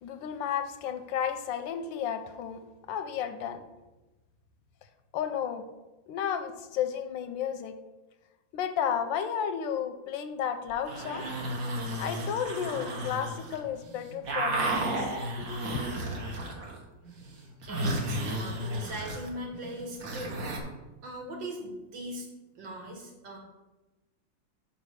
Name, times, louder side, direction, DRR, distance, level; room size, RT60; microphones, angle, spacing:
voice 1, 0.0-2.6 2.9-3.6 5.1-5.6 6.1-7.7 8.5-11.2 12.0-15.0 15.4-16.1, left 8 dB, 85° left, 8 dB, 1.3 m, -33 dB
sound 1, 10.7-13.6 13.8-16.8 17.1-20.6, right 1 dB, 50° right, 1.4 m, -33 dB
voice 2, 17.7-20.4 21.0-22.3 22.6-23.4, right 1 dB, 80° right, 1 dB, 2.1 m, -40 dB
5.6 x 4.2 x 6.2 m, 1.1 s
omnidirectional pair, 2.0 m